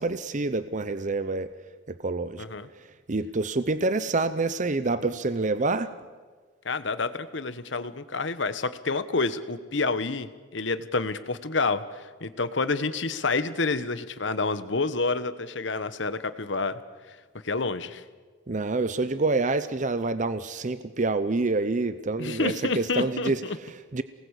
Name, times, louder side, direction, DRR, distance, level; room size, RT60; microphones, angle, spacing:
voice 1, 0.0-1.5 1.9-2.4 3.1-5.9 18.5-24.0, right 3 dB, 40° right, 12 dB, 0.7 m, -27 dB
voice 2, 2.4-2.7 6.6-16.8 17.1-17.2 17.4-18.0 22.2-23.6, left 3 dB, 65° left, 12 dB, 1.2 m, -28 dB
27.5 x 19.5 x 8.2 m, 1.5 s
head